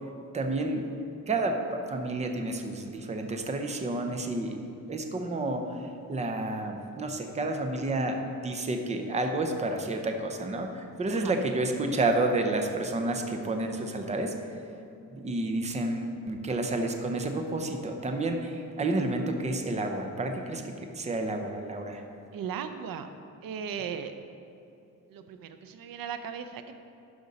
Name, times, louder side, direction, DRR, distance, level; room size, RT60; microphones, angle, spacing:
voice 1, 0.3-0.8 1.3-4.6 4.9-5.6 6.1-14.3 15.1-22.0, right 2 dB, 20° right, 4 dB, 0.6 m, -30 dB
voice 2, 22.3-23.1 23.4-24.1 25.1-26.8, right 7 dB, 90° right, 9 dB, 0.6 m, -37 dB
12.0 x 5.2 x 4.0 m, 2.8 s
wide cardioid pair, 175°, 34 cm